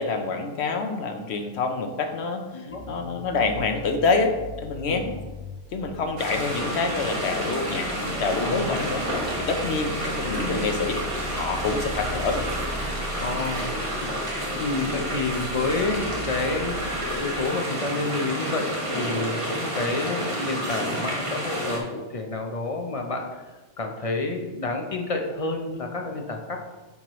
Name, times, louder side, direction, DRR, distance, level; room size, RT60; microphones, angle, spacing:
voice 1, 0.0-5.0 5.7-9.0 9.4-11.0 11.3-12.5, left 4 dB, 70° left, 6 dB, 1.0 m, -27 dB
voice 2, 2.5-2.9 4.9-5.1 8.3-8.8 13.2-14.2 14.5-23.4 23.8-26.6, left 3 dB, 40° left, 3 dB, 0.5 m, -29 dB
sound 1, 2.7-17.2, equal, 85° left, 2.4 m, -39 dB
sound 2, 6.2-21.8, equal, 30° right, 1.1 m, -30 dB
9.0 x 4.6 x 3.0 m, 1.2 s
omnidirectional pair, 1.2 m